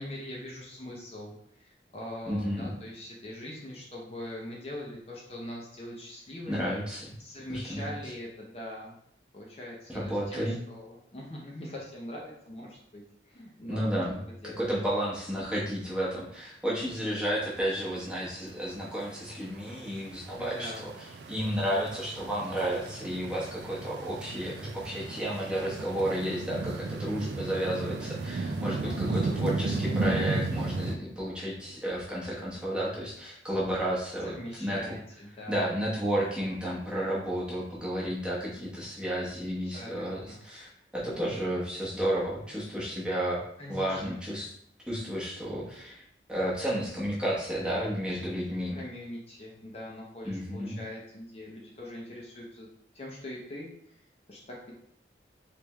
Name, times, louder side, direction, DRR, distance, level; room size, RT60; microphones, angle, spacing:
voice 1, 0.0-6.8 7.2-8.9 9.3-14.0 14.3-14.7 20.4-20.8 28.8-29.4 34.2-35.7 39.6-40.4 43.6-44.2 48.1-48.3 48.7-52.7 52.9-54.0 54.3-54.7, left 1 dB, 35° left, -3 dB, 0.7 m, -42 dB
voice 2, 2.3-2.7 6.5-7.1 7.5-7.9 9.9-10.6 13.7-14.2 14.4-20.7 21.3-34.3 34.6-35.0 35.5-43.4 43.7-44.5 44.9-46.0 46.3-48.8 50.2-50.8, equal, 5° right, -7 dB, 1.0 m, -32 dB
sound 1, 18.2-31.0, right 3 dB, 70° right, 0.4 m, -34 dB
3.4 x 3.3 x 3.1 m, 0.70 s
head